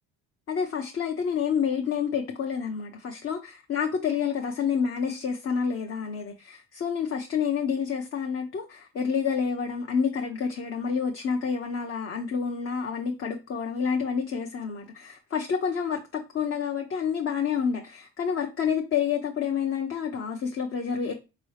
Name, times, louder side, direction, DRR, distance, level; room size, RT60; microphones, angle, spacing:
voice 1, 0.5-21.1, left 6 dB, 40° left, 0.7 m, -28 dB
4.6 x 2.9 x 3.2 m
supercardioid pair, 85°, 35 cm